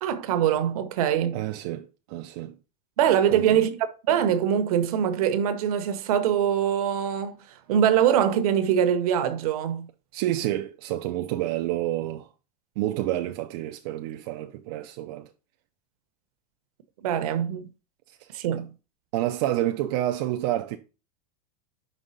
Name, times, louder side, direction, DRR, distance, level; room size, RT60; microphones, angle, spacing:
voice 1, 0.0-1.4 3.0-7.4 7.7-9.9 17.0-17.7 18.3-18.7, right 9 dB, 60° right, 0.9 m, -23 dB
voice 2, 1.3-2.6 3.3-3.6 10.1-12.3 12.8-15.3 18.1-18.4 19.1-20.8, right 14 dB, 35° right, 0.4 m, -29 dB
5.3 x 3.5 x 5.4 m
supercardioid pair, 175°, 21 cm